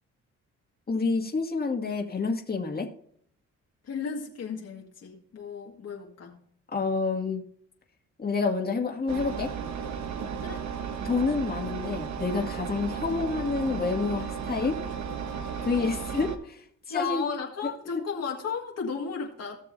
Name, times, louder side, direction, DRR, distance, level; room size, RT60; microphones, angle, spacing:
voice 1, 0.9-2.9 6.7-7.4 8.2-9.5 11.0-14.8 15.6-17.2 17.9-18.1, left 4 dB, 30° left, 1 dB, 2.2 m, -28 dB
voice 2, 3.8-6.4 10.4-10.7 16.9-19.6, left 6 dB, 55° left, 0 dB, 2.0 m, -34 dB
Engine, 9.1-16.4, right 7 dB, 65° right, 1.3 m, -34 dB
17.5 x 6.6 x 2.7 m, 0.62 s
cardioid pair, 90°, 30 cm